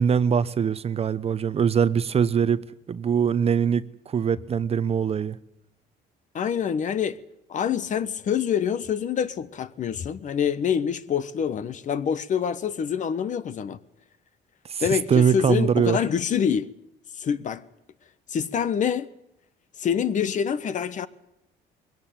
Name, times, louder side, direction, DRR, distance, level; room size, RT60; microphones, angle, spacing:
voice 1, 0.0-5.4 14.7-14.8 15.1-16.0, right 7 dB, 35° right, 0.9 m, -22 dB
voice 2, 6.3-7.2 7.5-13.8 14.8-16.7 17.2-17.6 18.3-19.1 19.8-21.1, left 8 dB, 45° left, 1.2 m, -26 dB
21.5 x 17.0 x 9.2 m
cardioid pair, 110°, 17 cm